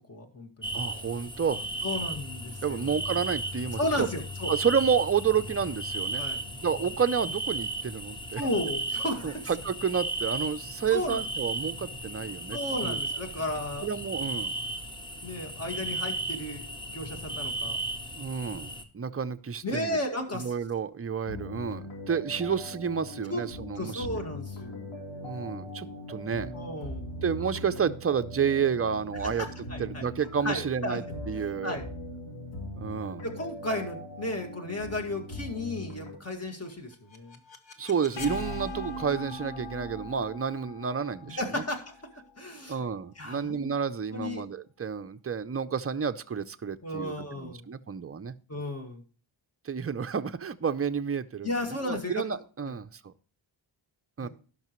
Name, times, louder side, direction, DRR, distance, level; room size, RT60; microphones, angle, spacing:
voice 1, 0.1-0.7 1.8-2.9 3.8-4.5 6.2-6.4 8.4-9.5 10.9-11.2 12.5-13.9 15.2-17.8 19.6-20.5 23.3-23.4 23.8-24.9 26.5-27.1 29.2-30.1 30.4-31.0 31.6-31.8 33.2-37.4 41.4-41.9 42.4-42.8 43.2-43.7 44.1-44.5 46.8-47.6 48.5-49.0 51.4-52.2 52.6-52.7 54.2-54.3, left 1 dB, 30° left, 3 dB, 1.9 m, -34 dB
sound 1, 0.6-18.8, right 2 dB, 10° left, 0.9 m, -35 dB
voice 2, 0.7-1.7 2.6-4.1 4.5-6.2 6.6-8.4 9.2-12.6 12.8-13.0 13.8-14.5 18.2-20.0 20.3-24.1 25.2-26.5 27.2-29.5 29.8-31.8 32.8-33.2 37.8-41.6 42.7-48.3 49.7-51.5 51.9-53.1 54.2-54.3, right 7 dB, 30° right, 10 dB, 0.5 m, -30 dB
sound 2, 21.3-36.1, left 1 dB, 85° left, 3.5 m, -40 dB
sound 3, 36.7-42.6, left 1 dB, 65° left, 1.2 m, -40 dB
17.5 x 6.0 x 3.0 m, 0.39 s
wide cardioid pair, 165°, 48 cm